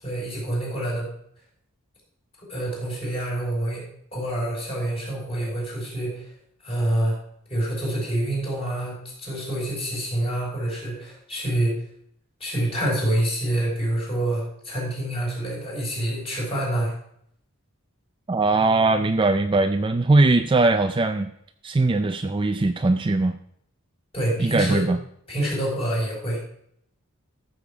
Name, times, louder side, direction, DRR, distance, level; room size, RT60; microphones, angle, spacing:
voice 1, 0.0-1.1 2.5-3.8 4.1-6.3 6.6-7.2 7.5-11.7 12.4-16.9 24.1-24.8 25.3-26.4, right 1 dB, 25° left, -3 dB, 4.7 m, -27 dB
voice 2, 18.3-21.3 21.6-23.4 24.4-25.0, right 2 dB, 20° right, 8 dB, 0.4 m, -20 dB
13.5 x 7.1 x 4.8 m, 0.70 s
head